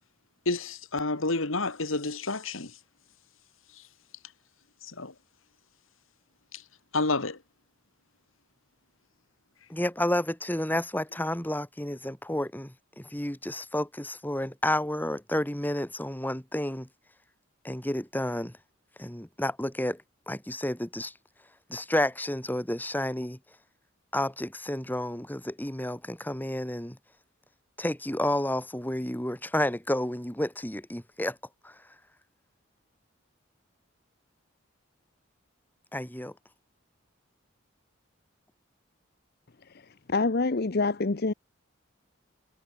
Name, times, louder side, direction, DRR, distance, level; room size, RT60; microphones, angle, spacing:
voice 1, 0.5-2.7 5.0-5.1 6.9-7.4, left 3 dB, 80° left, 2.5 m, -29 dB
voice 2, 9.7-16.9 17.6-18.5 19.0-20.0 20.3-21.1 21.7-23.4 24.1-27.0 27.8-31.4 31.6-31.7 35.9-36.3, left 1 dB, 10° left, 2.3 m, -30 dB
voice 3, 39.7-41.3, left 3 dB, 50° left, 0.8 m, -27 dB
head